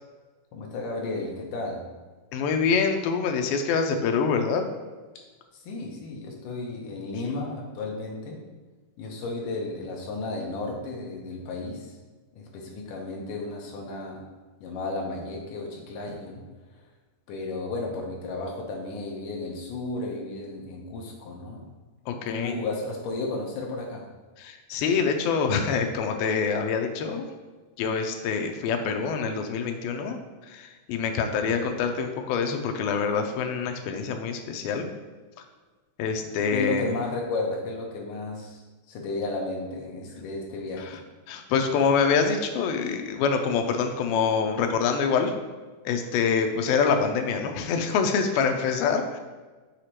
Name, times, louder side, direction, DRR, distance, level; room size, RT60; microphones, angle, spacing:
voice 1, 0.5-1.8 5.6-8.4 9.0-12.0 12.3-14.2 14.6-16.4 17.3-21.7 22.3-24.1 36.5-38.6 38.9-41.0, left 3 dB, 70° left, 0 dB, 2.3 m, -33 dB
voice 2, 2.3-4.7 22.1-22.6 24.4-27.3 27.8-34.9 36.0-36.8 40.8-41.0 41.3-45.3 45.9-49.2, left 5 dB, 90° left, 5 dB, 2.4 m, -25 dB
6.5 x 5.0 x 2.9 m, 1.3 s
omnidirectional pair, 4.2 m